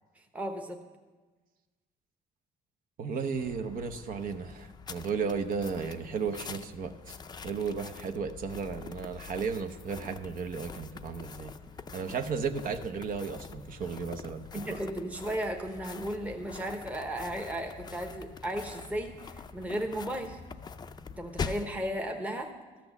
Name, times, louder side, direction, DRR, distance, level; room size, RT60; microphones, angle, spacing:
voice 1, 0.2-0.8 14.5-20.4 21.1-22.5, right 1 dB, 10° right, 4 dB, 0.9 m, -35 dB
voice 2, 3.0-7.2 7.4-11.5 11.9-14.8, right 5 dB, 55° right, 6 dB, 0.8 m, -34 dB
sound 1, 3.3-21.8, left 5 dB, 25° left, 0.5 m, -44 dB
13.0 x 6.1 x 7.0 m, 1.3 s
cardioid pair, 110°, 17 cm